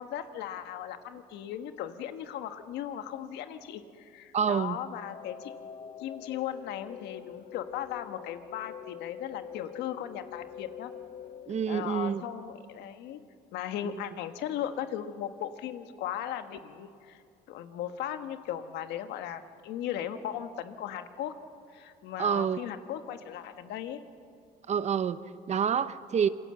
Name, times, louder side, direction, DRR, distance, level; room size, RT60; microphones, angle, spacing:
voice 1, 0.0-5.5 6.0-10.9 11.7-13.2 13.5-17.2 17.5-21.3 21.7-24.0, left 10 dB, 85° left, 9 dB, 1.4 m, -37 dB
voice 2, 4.3-4.8 11.5-12.2 13.8-14.0 22.2-22.6 24.7-26.3, right 7 dB, 40° right, 14 dB, 0.9 m, -28 dB
sound 1, 4.9-12.9, left 9 dB, 40° left, 0.6 m, -46 dB
26.5 x 22.5 x 7.7 m, 2.5 s
cardioid pair, 110°, 17 cm